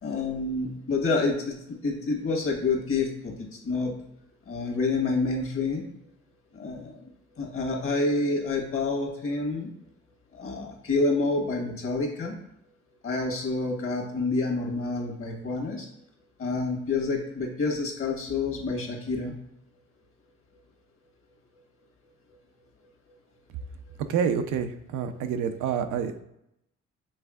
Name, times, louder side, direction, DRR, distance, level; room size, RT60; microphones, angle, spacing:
voice 1, 0.0-1.6 1.8-3.9 4.5-5.8 6.5-7.0 7.4-9.7 10.3-12.3 13.0-15.9 16.4-19.3, left 3 dB, 45° left, 1 dB, 1.2 m, -28 dB
voice 2, 24.1-26.2, right 7 dB, 90° right, 8 dB, 0.5 m, -28 dB
5.5 x 3.4 x 2.3 m, 0.80 s
cardioid pair, 90°, 30 cm